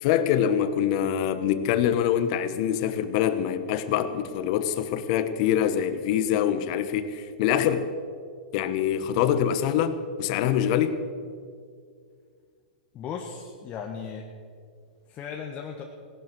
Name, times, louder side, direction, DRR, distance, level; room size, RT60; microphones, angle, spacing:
voice 1, 0.0-7.9 8.5-11.0, left 9 dB, 50° left, 1.3 m, -25 dB
voice 2, 12.9-14.3 15.1-15.8, left 6 dB, 30° left, 1.4 m, -36 dB
17.5 x 12.0 x 6.3 m
hypercardioid pair, 135°, 5 cm